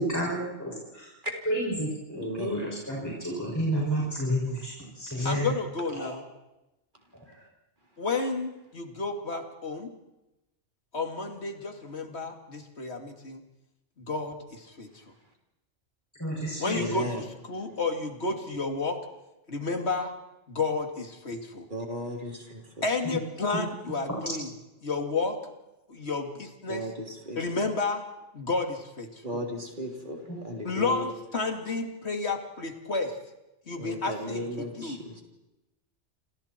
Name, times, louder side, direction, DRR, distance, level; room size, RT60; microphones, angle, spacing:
voice 1, 0.0-0.7 1.5-5.5 6.0-6.1 16.2-16.8, equal, 15° left, -5 dB, 6.4 m, -30 dB
voice 2, 2.2-2.7 16.7-17.2 21.7-22.8 26.7-27.6 29.2-31.1 33.8-35.2, left 1 dB, 45° right, 2 dB, 3.5 m, -36 dB
voice 3, 5.2-6.2 8.0-9.9 10.9-13.4 14.0-14.9 16.6-17.1 17.5-19.0 19.5-20.1 20.5-21.7 22.8-24.5 24.8-25.4 25.9-26.9 27.4-28.0 28.3-29.1 30.6-33.1 33.7-35.0, left 3 dB, 70° left, 4 dB, 2.8 m, -31 dB
29.0 x 28.0 x 4.5 m, 0.96 s
omnidirectional pair, 1.1 m